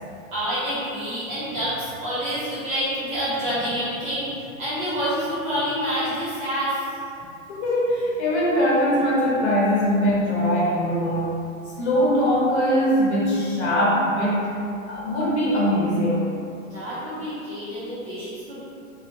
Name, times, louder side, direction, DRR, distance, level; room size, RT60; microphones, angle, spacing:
voice 1, 0.3-6.8 16.7-18.6, equal, 15° right, -13 dB, 0.5 m, -27 dB
voice 2, 7.5-11.4 11.8-14.5 14.9-16.4, equal, 55° left, -6 dB, 0.9 m, -21 dB
2.6 x 2.1 x 2.9 m, 2.6 s
hypercardioid pair, 145°, 41 cm